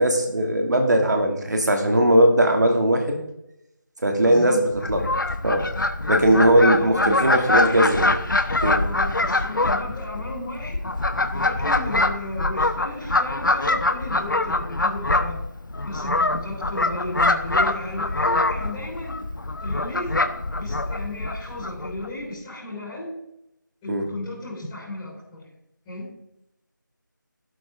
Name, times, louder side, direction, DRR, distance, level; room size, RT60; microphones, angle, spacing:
voice 1, 0.0-3.2 4.0-5.1 5.4-5.6 6.1-8.2 8.6-8.8 23.9-24.0, right 1 dB, 60° right, 3 dB, 2.7 m, -19 dB
voice 2, 4.2-4.6 6.1-7.9 8.8-10.8 11.3-15.4 15.8-19.1 19.6-20.1 20.6-23.1 23.8-25.5 25.8-26.1, left 2 dB, 5° left, -11 dB, 4.8 m, -34 dB
Fowl, 4.8-22.1, left 2 dB, 70° left, 1.2 m, -24 dB
13.0 x 12.0 x 3.8 m, 0.84 s
figure-of-eight pair, 175°, 11 cm